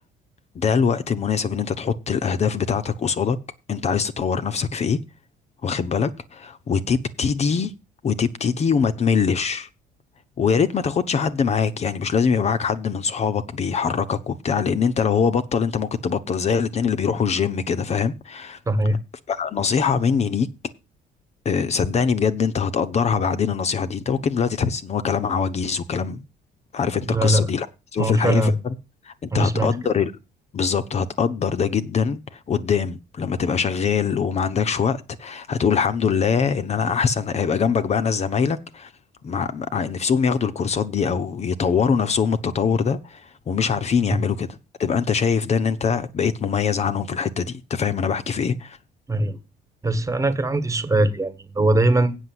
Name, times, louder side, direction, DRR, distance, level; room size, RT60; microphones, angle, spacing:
voice 1, 0.5-3.4 3.7-5.0 5.6-7.7 8.0-9.7 10.4-18.6 19.3-20.5 21.4-26.2 26.7-27.7 27.9-28.8 29.0-30.1 30.5-38.9 39.2-44.5 44.8-48.8, left 6 dB, 40° left, 0.9 m, -23 dB
voice 2, 18.7-19.0 27.1-27.5 28.0-28.6 29.3-29.7 49.1-49.4 49.8-52.2, right 1 dB, 20° right, 1.5 m, -21 dB
8.3 x 6.6 x 7.8 m
cardioid pair, 110°, 17 cm